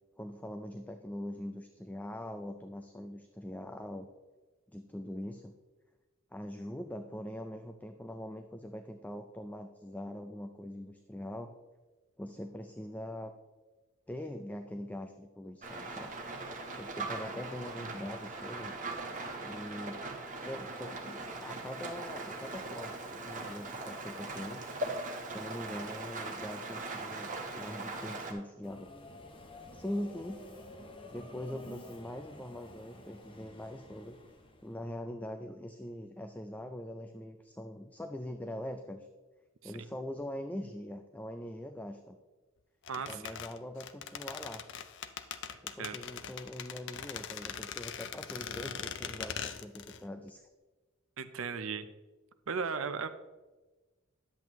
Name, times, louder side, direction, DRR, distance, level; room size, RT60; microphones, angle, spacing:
voice 1, 0.2-4.1 4.7-5.5 6.3-11.5 12.2-13.3 14.1-16.2 16.7-18.7 19.4-20.0 20.4-24.7 25.3-27.3 27.5-28.9 29.7-30.4 31.0-34.2 34.6-39.1 39.6-42.2 43.1-44.6 45.6-50.4, left 1 dB, 10° left, 6 dB, 0.4 m, -42 dB
Rain, 15.6-28.3, right 2 dB, 40° right, 1.2 m, -40 dB
Subway metro underground, 28.6-34.9, left 1 dB, 25° left, 0.9 m, -51 dB
sound 1, 42.9-50.0 50.3-50.4, left 8 dB, 60° left, 0.5 m, -41 dB
voice 2, 42.9-43.4 45.8-46.0 51.2-51.9 52.5-53.1, right 5 dB, 75° right, 11 dB, 0.6 m, -36 dB
10.5 x 7.6 x 3.1 m, 1.2 s
head